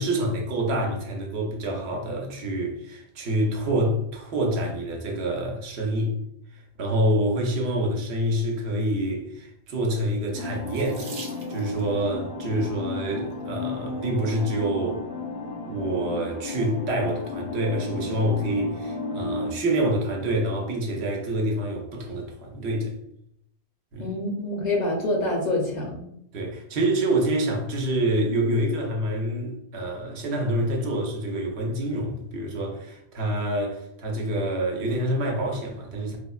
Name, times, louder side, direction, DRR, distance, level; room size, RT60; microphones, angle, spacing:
voice 1, 0.0-6.1 6.8-15.0 15.7-22.9 23.9-24.1 26.3-36.2, right 1 dB, 85° right, 0.9 m, -27 dB
sound 1, 10.3-19.5, left 3 dB, 90° left, 1.0 m, -34 dB
Water tap faucet / Sink (filling or washing), 10.6-11.9 12.9-13.3 14.0-14.1 14.5-14.6, right 4 dB, 60° right, 0.6 m, -43 dB
voice 2, 24.0-26.0, left 1 dB, 55° left, 0.6 m, -26 dB
3.2 x 2.1 x 2.3 m
omnidirectional pair, 1.1 m